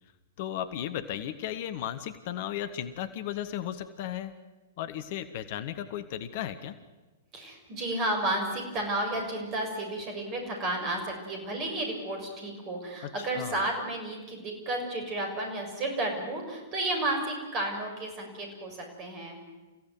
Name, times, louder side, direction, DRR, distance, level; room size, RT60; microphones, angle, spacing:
voice 1, 0.4-4.3 4.8-6.7 13.0-13.6, left 11 dB, 45° left, 12 dB, 1.3 m, -35 dB
voice 2, 7.3-19.4, right 1 dB, 30° right, 3 dB, 6.7 m, -32 dB
29.0 x 16.0 x 9.3 m, 1.2 s
figure-of-eight pair, 105°, 0 cm